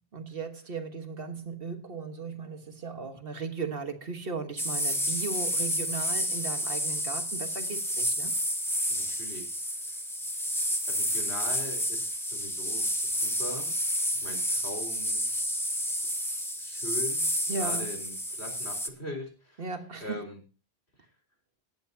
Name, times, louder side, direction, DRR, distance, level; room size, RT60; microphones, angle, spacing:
voice 1, 0.1-8.3 17.5-17.9 19.6-20.2, right 4 dB, 65° right, 1.6 m, -37 dB
sound 1, 4.6-18.9, equal, 5° left, 0.9 m, -30 dB
voice 2, 8.9-10.0 10.9-13.7 14.2-15.7 16.6-17.3 17.6-19.6 20.0-20.4, left 1 dB, 85° left, 4.1 m, -41 dB
18.0 x 10.5 x 2.8 m
omnidirectional pair, 1.1 m